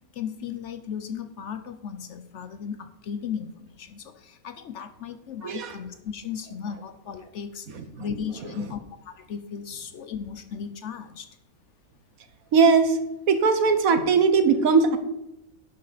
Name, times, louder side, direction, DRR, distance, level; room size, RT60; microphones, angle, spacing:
voice 1, 0.2-7.7 8.0-8.8 9.1-11.3, left 7 dB, 60° left, 9 dB, 0.9 m, -36 dB
voice 2, 5.4-5.7 7.7-8.0 12.5-13.0 13.3-15.0, right 5 dB, 70° right, 9 dB, 1.4 m, -20 dB
11.5 x 8.4 x 4.1 m, 0.93 s
omnidirectional pair, 1.5 m